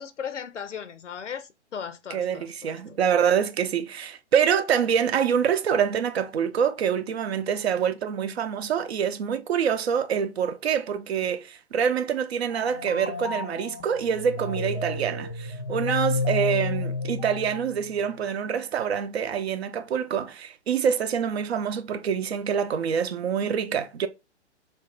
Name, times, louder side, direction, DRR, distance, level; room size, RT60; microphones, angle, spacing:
voice 1, 0.0-2.8, left 7 dB, 85° left, 0.6 m, -37 dB
voice 2, 2.1-24.1, right 7 dB, 60° right, 0.6 m, -26 dB
sound 1, 12.4-17.9, left 3 dB, 25° left, 0.4 m, -31 dB
3.3 x 2.7 x 3.8 m
figure-of-eight pair, 125°, 35 cm